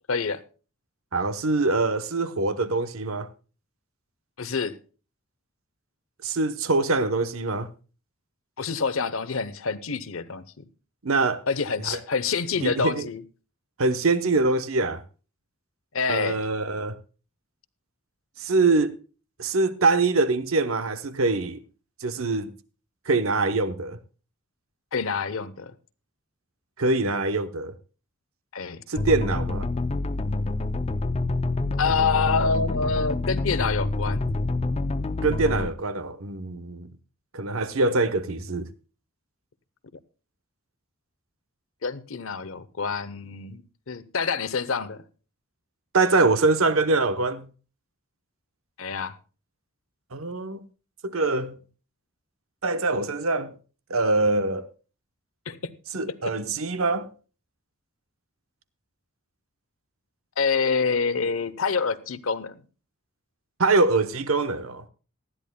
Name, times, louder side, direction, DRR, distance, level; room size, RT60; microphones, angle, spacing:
voice 1, 0.1-0.4 4.4-4.8 8.6-10.7 11.5-13.2 15.9-16.4 24.9-25.7 28.5-28.8 31.8-34.2 41.8-43.6 43.9-45.0 48.8-49.1 55.5-55.7 60.4-62.6, left 5 dB, 75° left, 0.8 m, -27 dB
voice 2, 1.1-3.3 6.2-7.7 11.0-11.4 11.9-12.0 12.6-13.1 13.8-15.0 16.1-17.0 18.4-18.9 19.4-21.6 22.0-22.5 23.1-24.0 26.8-27.7 28.9-29.7 35.2-36.9 37.3-38.7 45.9-47.5 50.1-50.7 51.0-51.6 52.6-53.5 53.9-54.7 55.9-57.1 63.6-64.9, right 3 dB, 80° right, 0.9 m, -24 dB
sound 1, 29.0-35.7, left 2 dB, 30° left, 0.5 m, -27 dB
19.0 x 12.5 x 2.2 m
head